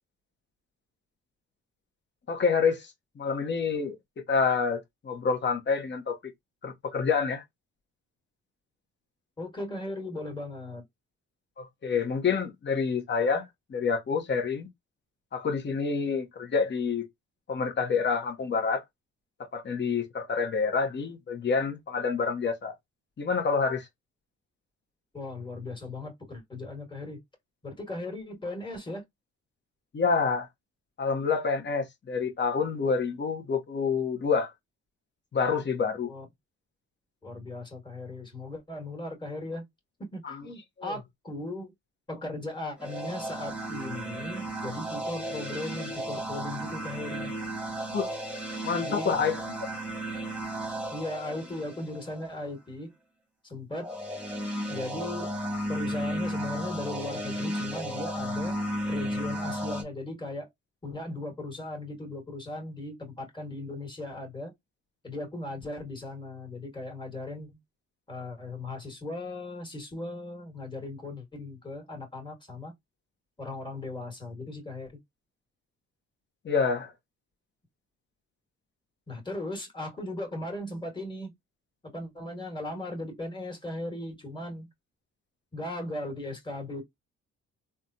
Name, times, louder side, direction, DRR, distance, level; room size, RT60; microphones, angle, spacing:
voice 1, 2.3-2.9 3.2-3.9 4.3-6.2 6.6-7.4 11.6-14.7 15.3-17.0 17.5-18.8 19.5-22.7 23.2-23.9 29.9-30.5 31.0-34.5 35.3-36.1 40.2-40.5 40.8-40.9 47.9-48.1 48.6-49.4 76.4-76.9, left 5 dB, 35° left, 1.1 m, -27 dB
voice 2, 9.4-10.8 25.1-27.2 27.6-29.0 36.0-36.2 37.2-39.7 40.1-41.7 42.1-47.3 48.8-49.1 50.9-52.9 53.4-53.9 54.7-55.3 55.7-58.5 58.9-60.5 60.8-64.5 65.0-67.6 68.1-72.7 73.4-75.0 79.1-81.3 81.8-84.7 85.5-86.8, left 2 dB, 15° left, 1.7 m, -37 dB
sound 1, 42.8-52.3 53.8-59.8, right 1 dB, 5° right, 1.3 m, -34 dB
3.4 x 2.3 x 2.7 m
cardioid pair, 90°, 30 cm